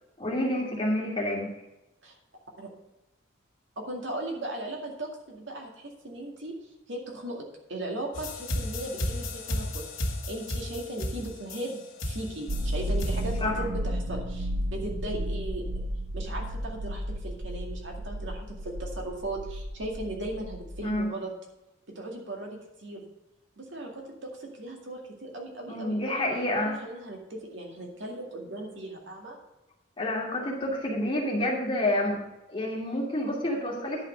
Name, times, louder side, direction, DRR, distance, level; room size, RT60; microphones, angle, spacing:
voice 1, 0.2-1.5 13.4-13.6 20.8-21.1 25.7-26.8 30.0-32.2 32.5-34.1, left 1 dB, 25° left, -2 dB, 2.4 m, -28 dB
voice 2, 3.8-6.6 6.9-15.8 16.1-21.3 22.0-23.1 23.6-26.2 26.6-29.4, right 1 dB, 65° right, 0 dB, 2.2 m, -37 dB
sound 1, 8.1-13.4, left 1 dB, 80° left, 2.0 m, -33 dB
sound 2, 12.5-20.9, equal, 90° right, 1.3 m, -33 dB
10.5 x 5.8 x 6.6 m, 0.94 s
head